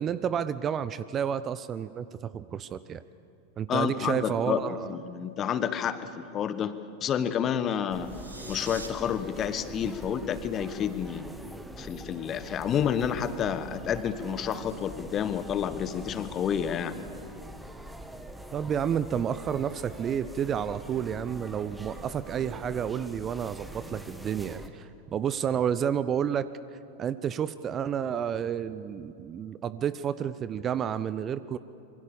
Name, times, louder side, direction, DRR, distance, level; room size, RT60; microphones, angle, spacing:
voice 1, 0.0-3.0 3.6-4.9 18.5-26.5 27.0-31.6, right 8 dB, 25° right, 15 dB, 0.7 m, -30 dB
voice 2, 3.7-8.1 8.5-11.3 11.8-17.0, left 8 dB, 30° left, 12 dB, 1.4 m, -30 dB
sound 1, 7.9-24.7, right 1 dB, 5° right, 1.6 m, -44 dB
sound 2, 8.0-8.9, right 3 dB, 80° right, 2.5 m, -43 dB
26.0 x 24.0 x 7.1 m, 2.7 s
figure-of-eight pair, 90°, 0 cm